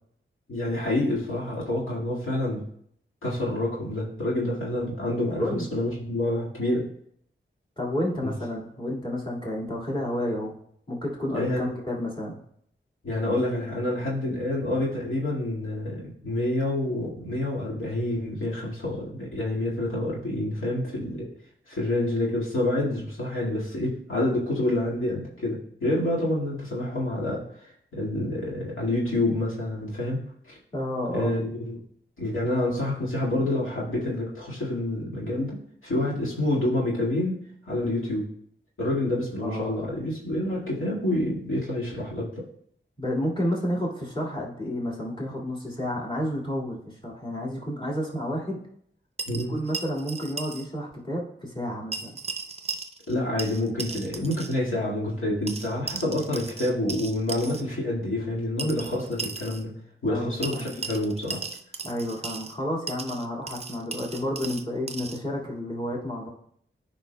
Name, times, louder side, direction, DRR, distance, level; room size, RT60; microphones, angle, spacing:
voice 1, 0.5-2.6 3.2-6.9 8.2-8.3 11.3-11.7 13.0-21.3 21.7-27.4 27.9-30.6 31.1-31.8 32.2-37.4 37.7-38.3 38.8-42.5 49.3-49.5 53.1-59.7 60.0-61.4, left 1 dB, 85° left, -6 dB, 2.0 m, -28 dB
voice 2, 5.1-5.7 7.8-10.5 10.9-12.4 30.7-31.4 39.0-39.2 39.4-39.9 43.0-48.6 49.3-52.2 60.1-60.8 61.8-66.3, equal, 25° left, -4 dB, 2.0 m, -31 dB
sound 1, 49.2-50.7 50.9-51.0 51.9-53.1 53.4-54.6 55.5-57.6 58.6-59.6 60.4-62.6 62.9-65.2, right 4 dB, 30° right, 0.5 m, -36 dB
13.5 x 5.0 x 2.2 m, 0.67 s
wide cardioid pair, 100°, 20 cm